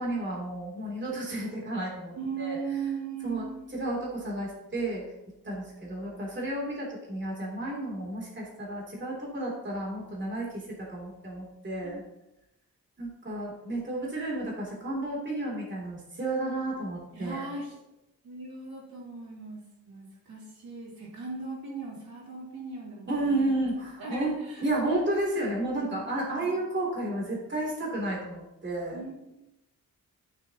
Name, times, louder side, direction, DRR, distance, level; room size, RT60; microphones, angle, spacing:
voice 1, 0.0-2.6 3.2-3.5 3.8-5.0 5.4-10.5 10.8-12.0 13.0-17.4 23.1-24.3 24.6-29.0, right 1 dB, 30° right, -3 dB, 3.0 m, -32 dB
voice 2, 2.2-3.8 11.8-12.0 17.1-17.8 18.2-23.5 24.0-24.7 25.7-26.5 28.9-29.4, right 4 dB, 85° right, -5 dB, 3.7 m, -38 dB
14.5 x 7.0 x 2.9 m, 0.89 s
wide cardioid pair, 150°, 35 cm